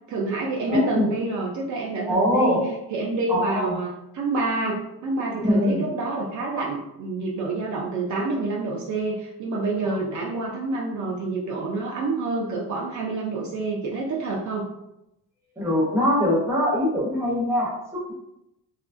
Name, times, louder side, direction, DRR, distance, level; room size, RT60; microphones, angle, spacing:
voice 1, 0.1-2.6 2.9-14.7, right 3 dB, 50° right, -2 dB, 0.5 m, -28 dB
voice 2, 0.7-1.1 2.1-2.6 3.3-3.7 5.4-5.9 15.6-18.1, left 1 dB, 5° right, -5 dB, 0.7 m, -22 dB
2.7 x 2.4 x 2.4 m, 0.86 s
cardioid pair, 160°, 38 cm